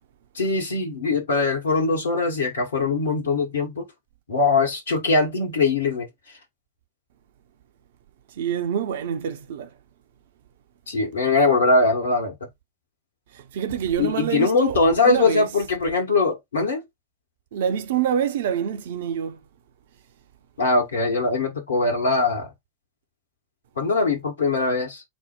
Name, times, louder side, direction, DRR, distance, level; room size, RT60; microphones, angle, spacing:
voice 1, 0.3-3.8 4.3-6.1 10.9-12.3 14.0-16.8 20.6-22.5 23.8-25.0, left 3 dB, 70° left, 1.1 m, -21 dB
voice 2, 8.4-9.7 13.5-14.8 15.0-15.5 17.5-19.4, right 8 dB, 55° right, 0.6 m, -26 dB
4.3 x 2.1 x 4.6 m
figure-of-eight pair, 90°, 0 cm